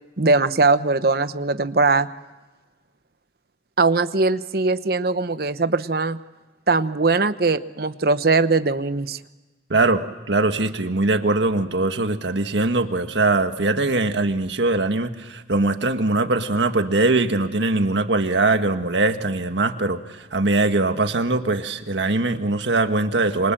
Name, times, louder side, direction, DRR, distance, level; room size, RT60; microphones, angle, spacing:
voice 1, 0.2-2.1 3.8-6.2 6.7-9.2, right 3 dB, 60° right, 12 dB, 0.9 m, -20 dB
voice 2, 9.7-23.5, right 2 dB, 90° right, 7 dB, 1.6 m, -21 dB
27.5 x 25.0 x 7.7 m, 1.2 s
head